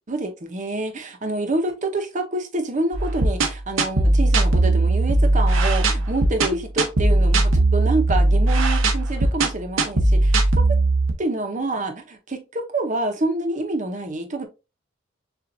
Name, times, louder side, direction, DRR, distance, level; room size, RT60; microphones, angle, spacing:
voice 1, 0.1-10.8 11.2-14.5, right 2 dB, 40° right, 0.8 m, -27 dB
sound 1, 2.9-11.1, right 2 dB, 85° right, 0.8 m, -19 dB
6.8 x 2.5 x 2.6 m
head